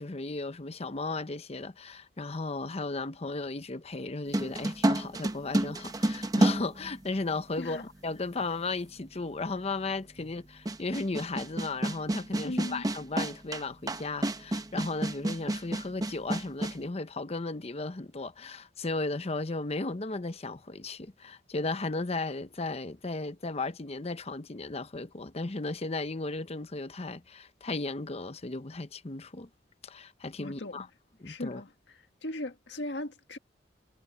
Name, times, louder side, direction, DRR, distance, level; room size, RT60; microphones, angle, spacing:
voice 1, 0.0-29.5 29.8-30.9 31.2-31.6, left 3 dB, 35° left, 0.8 m, -35 dB
sound 1, 4.3-7.5 8.4-8.5 10.7-16.8, right 1 dB, 20° right, 0.8 m, -29 dB
voice 2, 7.6-7.9 10.2-10.3 12.4-12.9 30.4-30.9 31.2-33.4, left 1 dB, 80° left, 1.7 m, -38 dB
head